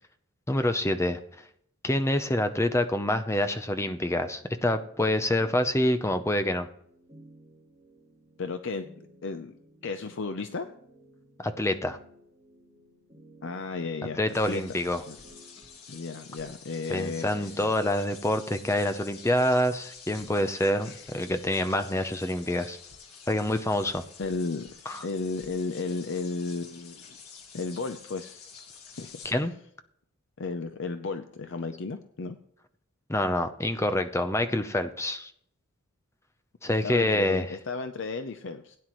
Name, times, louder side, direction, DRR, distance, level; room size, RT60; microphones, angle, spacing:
voice 1, 0.5-1.2 1.8-6.7 11.4-12.0 14.2-15.0 16.9-22.8 23.3-24.0 24.9-25.0 29.2-29.5 33.1-35.3 36.6-37.6, left 1 dB, 10° left, 8 dB, 0.6 m, -26 dB
sound 1, 3.5-15.8, equal, 15° right, 5.2 m, -56 dB
voice 2, 8.4-8.9 9.2-9.6 9.8-10.7 13.4-14.8 15.1-15.2 15.9-17.7 20.8-21.0 24.2-24.7 25.0-27.2 27.5-28.5 29.0-29.1 30.4-32.4 36.7-38.8, left 4 dB, 55° left, 8 dB, 0.6 m, -34 dB
sound 2, 14.3-29.3, left 5 dB, 80° left, 1.7 m, -49 dB
16.5 x 9.4 x 3.1 m, 0.68 s
head